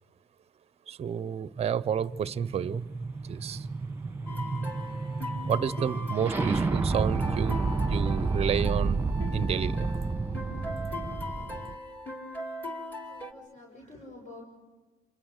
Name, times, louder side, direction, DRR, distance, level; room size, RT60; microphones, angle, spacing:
voice 1, 0.9-2.9 3.2-3.7 5.5-9.0 9.3-9.9, right 8 dB, 35° right, 18 dB, 0.7 m, -30 dB
sound 1, 1.6-11.7, right 3 dB, 15° right, 1.7 m, -30 dB
sound 2, 4.3-13.3, left 2 dB, 10° left, 3.0 m, -40 dB
voice 2, 13.1-14.4, left 2 dB, 45° left, 0 dB, 5.9 m, -48 dB
28.0 x 26.0 x 6.5 m, 1.2 s
cardioid pair, 110°, 17 cm